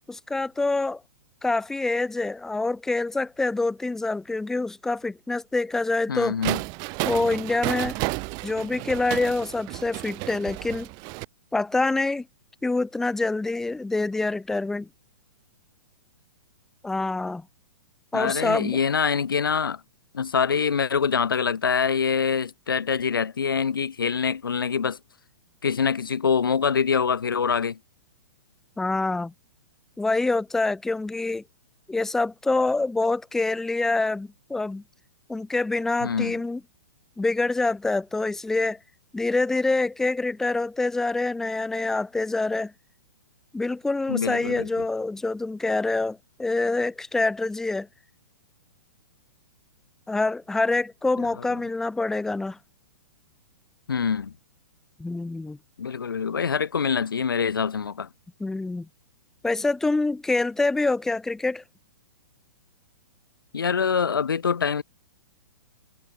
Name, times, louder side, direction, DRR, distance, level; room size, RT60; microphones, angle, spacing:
voice 1, 0.1-1.0 1.4-6.4 7.0-8.0 8.4-10.9 11.5-12.3 12.6-14.9 16.8-17.4 18.1-18.8 28.8-29.3 30.0-31.4 31.9-34.8 35.3-36.6 37.2-38.8 39.1-42.7 43.5-47.9 50.1-52.6 55.0-55.6 58.4-58.9 59.4-61.6, left 3 dB, 5° left, 0.3 m, -26 dB
voice 2, 6.1-6.6 18.1-19.8 20.1-25.0 25.6-27.8 36.0-36.3 44.1-44.7 53.9-54.3 55.8-58.1 63.5-64.8, left 6 dB, 75° left, 0.6 m, -25 dB
sound 1, 6.4-11.2, right 31 dB, 35° right, 3.0 m, -32 dB
figure-of-eight pair, 115°, 12 cm